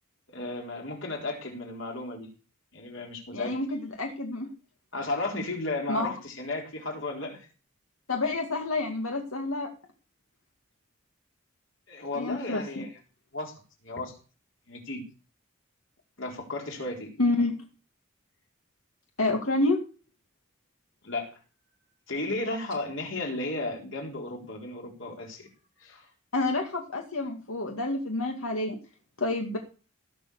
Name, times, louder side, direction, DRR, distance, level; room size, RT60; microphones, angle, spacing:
voice 1, 0.3-2.3 2.7-3.6 4.9-7.4 11.9-12.9 13.3-13.5 13.8-14.1 14.7-15.0 16.2-17.1 21.0-21.3 22.1-25.5 25.8-26.1, left 2 dB, 65° left, 1 dB, 3.9 m, -34 dB
voice 2, 3.3-4.5 5.9-6.1 8.1-9.7 12.1-12.8 17.2-17.5 19.2-19.8 26.3-28.8 29.2-29.6, left 2 dB, 85° left, 3 dB, 2.0 m, -28 dB
17.0 x 6.7 x 6.9 m, 0.35 s
head